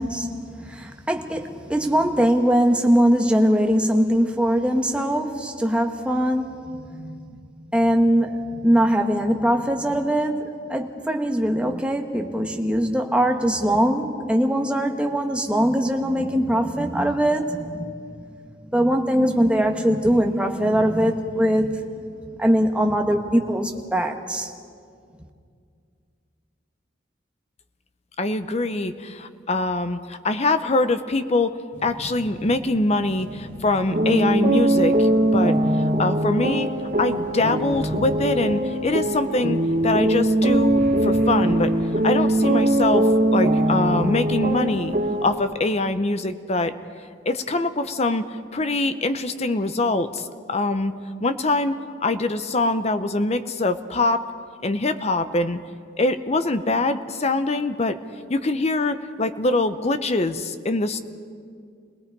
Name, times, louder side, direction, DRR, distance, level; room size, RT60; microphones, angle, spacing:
voice 1, 0.0-7.2 7.7-18.0 18.7-21.8 22.4-24.5, equal, 5° right, 3 dB, 1.2 m, -21 dB
voice 2, 28.2-36.7 37.0-41.7 42.0-44.9 45.2-46.7 47.3-48.2 48.5-50.9 51.2-54.3 54.6-55.6 56.0-58.0 58.3-61.0, left 2 dB, 35° left, 10 dB, 0.8 m, -24 dB
sound 1, 31.7-45.4, equal, 10° left, 3.2 m, -42 dB
sound 2, 33.9-45.4, right 1 dB, 40° right, 1.0 m, -21 dB
sound 3, 40.8-42.8, equal, 60° left, 4.9 m, -41 dB
29.5 x 19.0 x 4.7 m, 2.3 s
head